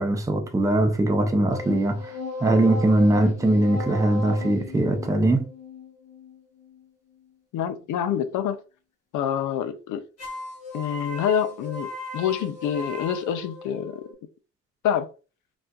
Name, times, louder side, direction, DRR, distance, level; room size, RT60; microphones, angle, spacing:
voice 1, 0.0-5.5, right 1 dB, 10° right, 0.6 m, -21 dB
sound 1, 1.5-6.8 10.2-14.1, left 3 dB, 55° left, 1.2 m, -36 dB
voice 2, 7.5-8.6 9.1-10.0 10.7-14.1 14.8-15.1, left 9 dB, 80° left, 0.6 m, -27 dB
4.0 x 2.3 x 2.3 m
cardioid pair, 90°, 30 cm